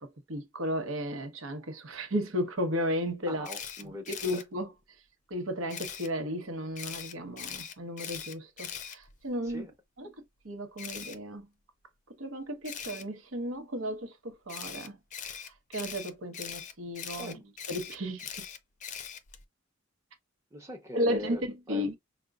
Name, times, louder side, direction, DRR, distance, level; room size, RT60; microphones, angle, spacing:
voice 1, 0.0-3.5 4.1-4.7 5.3-9.7 10.0-10.1 10.4-11.5 12.2-15.0 15.7-17.4 17.7-18.3 20.9-21.9, equal, 80° right, 1.0 m, -34 dB
voice 2, 3.3-4.4 9.4-9.7 17.2-17.5 20.5-21.9, left 1 dB, 15° right, 0.7 m, -42 dB
Camera, 3.4-4.4 5.7-6.1 6.8-9.5 10.8-11.2 12.6-13.0 14.5-19.4, left 8 dB, 40° left, 0.5 m, -41 dB
5.0 x 2.2 x 2.3 m
head